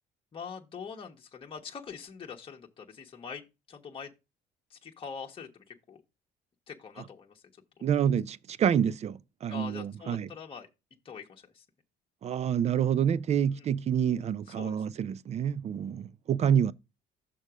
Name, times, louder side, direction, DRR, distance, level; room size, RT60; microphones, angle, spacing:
voice 1, 0.3-4.1 4.7-6.0 6.7-7.4 9.5-10.7 11.0-11.6 13.5-13.7 14.5-14.8, left 6 dB, 30° left, 1.2 m, -44 dB
voice 2, 7.8-10.3 12.2-16.7, right 8 dB, 40° right, 0.5 m, -28 dB
6.4 x 3.8 x 6.1 m
cardioid pair, 110°, 17 cm